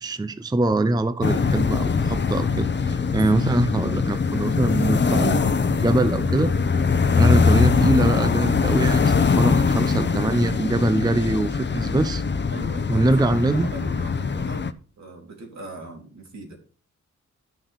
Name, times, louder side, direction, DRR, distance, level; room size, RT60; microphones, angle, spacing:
voice 1, 0.0-5.5 5.8-6.5 7.2-12.2 12.9-13.7, right 2 dB, 15° right, 11 dB, 0.6 m, -23 dB
sound 1, 1.2-14.7, left 5 dB, 40° left, 0.8 m, -22 dB
voice 2, 3.1-3.5 4.3-4.6 12.5-14.7 15.0-16.6, right 2 dB, 65° right, 0 dB, 3.8 m, -40 dB
11.0 x 6.3 x 5.1 m, 0.39 s
wide cardioid pair, 110°, 29 cm